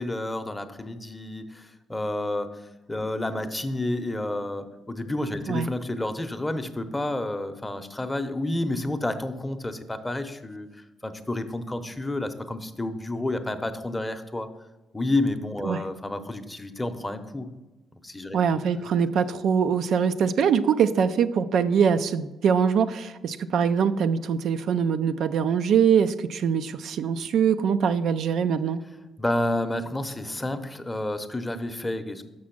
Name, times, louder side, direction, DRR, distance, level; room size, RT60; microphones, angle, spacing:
voice 1, 0.0-2.6 2.9-10.7 11.0-14.5 14.9-17.5 18.0-18.4 29.2-32.2, left 1 dB, 15° left, 8 dB, 0.7 m, -30 dB
voice 2, 18.3-28.8, right 7 dB, 70° right, 10 dB, 0.4 m, -23 dB
6.2 x 6.1 x 5.9 m, 1.1 s
cardioid pair, 90°, 0 cm